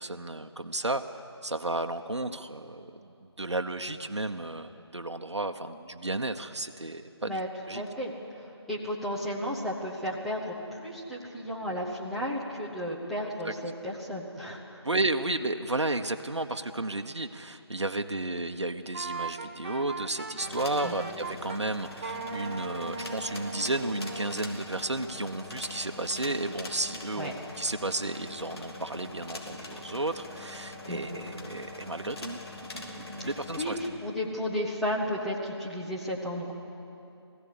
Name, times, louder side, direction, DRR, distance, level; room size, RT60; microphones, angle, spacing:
voice 1, 0.0-7.4 7.7-7.8 13.4-13.5 14.8-32.4 32.7-33.8, right 2 dB, 85° right, 6 dB, 1.0 m, -33 dB
voice 2, 7.7-14.8 20.8-21.0 27.2-27.3 30.9-31.3 33.2-33.3 33.6-36.5, equal, ahead, -7 dB, 0.9 m, -33 dB
Wind instrument woodwind instrument, 18.9-21.6 22.0-24.4, right 4 dB, 25° right, 1.0 m, -38 dB
sound 1, 20.4-33.9, left 2 dB, 60° left, 3.3 m, -43 dB
20.5 x 15.5 x 8.4 m, 2.8 s
figure-of-eight pair, 160°, 14 cm